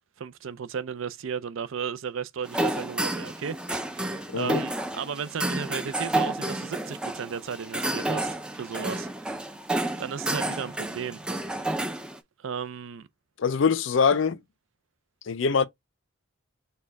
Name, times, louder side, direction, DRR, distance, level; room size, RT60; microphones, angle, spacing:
voice 1, 0.2-9.5 10.0-11.2 11.6-11.8 12.4-13.1, right 7 dB, 70° right, 0.4 m, -35 dB
sound 1, 2.4-12.2, right 1 dB, 5° right, 0.4 m, -30 dB
voice 2, 13.4-14.4 15.3-15.6, left 5 dB, 65° left, 0.4 m, -23 dB
4.2 x 2.2 x 4.5 m
head